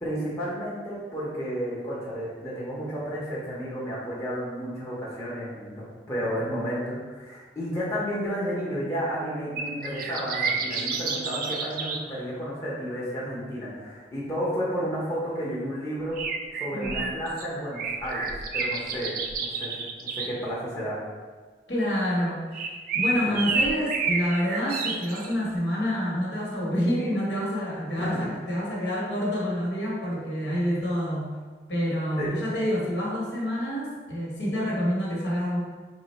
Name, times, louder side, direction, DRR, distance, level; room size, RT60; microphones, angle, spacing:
voice 1, 0.0-16.2 16.5-19.7 20.0-21.0 23.2-23.4 28.0-28.2 32.2-32.5, equal, 15° left, -8 dB, 0.8 m, -32 dB
sound 1, 9.6-12.0 16.1-17.4 17.7-20.3 22.5-25.3, right 4 dB, 50° right, 0.3 m, -29 dB
voice 2, 16.7-17.1 21.7-31.3 31.7-35.6, equal, 75° left, -5 dB, 1.1 m, -28 dB
3.8 x 2.1 x 4.1 m, 1.4 s
head